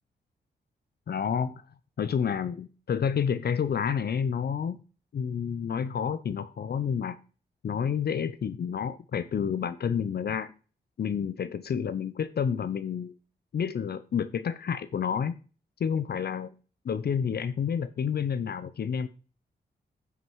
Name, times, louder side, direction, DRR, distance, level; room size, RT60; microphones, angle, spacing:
voice 1, 1.1-1.5 2.0-4.8 5.1-7.2 7.6-10.5 11.0-13.1 13.5-15.3 15.8-16.5 16.8-19.1, left 7 dB, 65° left, 14 dB, 0.7 m, -29 dB
9.0 x 6.1 x 4.6 m, 0.35 s
cardioid pair, 60°, 18 cm